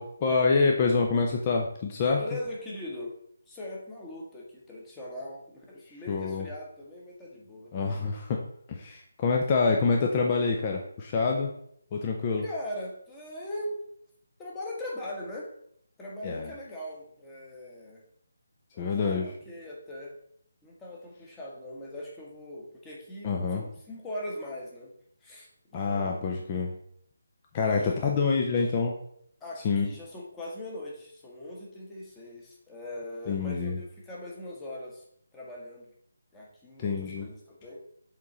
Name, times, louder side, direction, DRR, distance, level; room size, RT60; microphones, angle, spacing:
voice 1, 0.0-2.2 6.1-6.5 7.7-8.4 8.7-11.5 11.9-12.4 16.2-16.5 18.8-19.3 23.2-23.6 25.7-26.7 27.5-28.9 29.6-29.9 33.3-33.8 36.8-37.3, left 4 dB, 30° left, 1 dB, 0.6 m, -26 dB
voice 2, 2.2-3.1 3.5-7.7 12.4-13.7 14.4-15.5 16.0-18.0 18.7-20.1 20.6-24.9 25.2-26.3 27.6-28.7 29.4-35.0 35.3-35.9 36.3-37.8, left 1 dB, 10° left, -3 dB, 1.4 m, -40 dB
7.4 x 3.8 x 4.1 m, 0.69 s
figure-of-eight pair, 155°, 0 cm